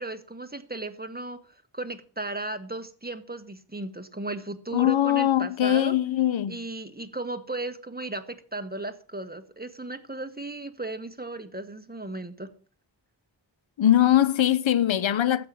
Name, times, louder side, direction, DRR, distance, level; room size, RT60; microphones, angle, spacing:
voice 1, 0.0-1.4 1.7-5.9 6.5-12.5, right 2 dB, 20° right, 1.6 m, -35 dB
voice 2, 4.7-6.6 13.8-15.5, left 12 dB, 90° left, 0.6 m, -21 dB
12.5 x 8.5 x 6.1 m
wide cardioid pair, 45°, 45 cm